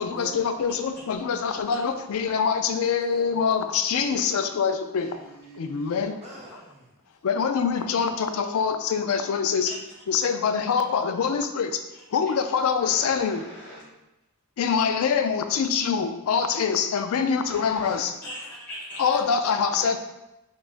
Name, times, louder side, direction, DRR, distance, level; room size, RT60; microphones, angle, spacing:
voice 1, 0.0-5.1 5.7-6.1 7.2-9.7 10.1-11.7 12.1-13.4 14.6-18.1 19.0-20.0, left 6 dB, 65° left, 8 dB, 0.3 m, -24 dB
voice 2, 1.0-2.8 3.1-4.0 4.9-6.9 17.8-18.0, right 1 dB, 30° right, -5 dB, 1.0 m, -50 dB
voice 3, 12.8-13.8 17.5-19.1 19.7-19.9, equal, 10° left, -10 dB, 0.7 m, -40 dB
5.6 x 2.4 x 2.5 m, 0.93 s
head